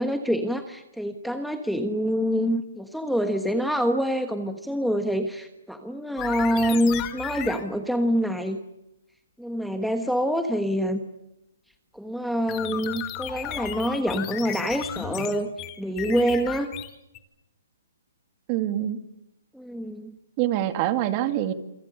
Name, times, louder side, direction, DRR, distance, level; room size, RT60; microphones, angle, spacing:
voice 1, 0.0-8.6 9.4-11.0 11.9-15.5 15.8-16.7 19.5-20.1, equal, ahead, 6 dB, 1.3 m, -26 dB
sound 1, 6.2-7.6 12.5-17.2, left 12 dB, 20° left, 2.1 m, -34 dB
voice 2, 18.5-19.0 20.4-21.5, right 12 dB, 30° right, 9 dB, 2.2 m, -25 dB
27.5 x 25.5 x 6.8 m, 0.88 s
hypercardioid pair, 160°, 0 cm